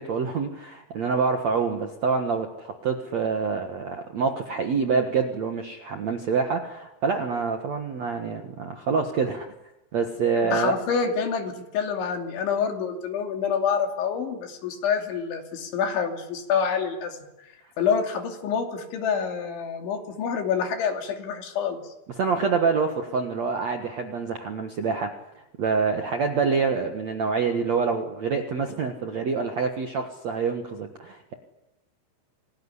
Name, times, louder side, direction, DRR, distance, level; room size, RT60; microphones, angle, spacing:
voice 1, 0.0-9.5 9.9-10.7 22.2-25.2 25.6-31.4, right 5 dB, 65° right, 5 dB, 1.8 m, -26 dB
voice 2, 10.4-17.5 17.8-21.9, left 6 dB, 75° left, 4 dB, 5.1 m, -27 dB
27.0 x 19.5 x 9.9 m, 0.96 s
omnidirectional pair, 5.4 m